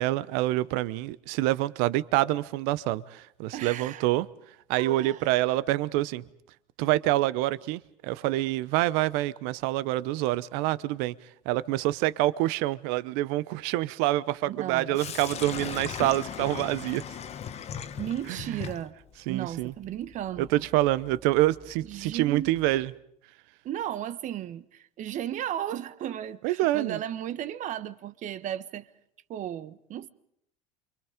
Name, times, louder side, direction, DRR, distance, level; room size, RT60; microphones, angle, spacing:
voice 1, 0.0-4.3 4.7-6.2 6.8-11.1 11.5-17.0 18.3-18.6 19.3-19.7 20.4-22.9 26.4-27.0, right 16 dB, 70° right, 0.9 m, -26 dB
voice 2, 3.5-4.1 4.7-5.3 14.5-15.0 18.0-18.9 19.3-20.6 21.9-22.5 23.6-28.9 29.3-30.1, right 11 dB, 45° right, 1.2 m, -35 dB
Sink (filling or washing), 14.9-22.9, left 8 dB, 40° left, 1.3 m, -40 dB
29.0 x 24.0 x 5.1 m
supercardioid pair, 95°, 17 cm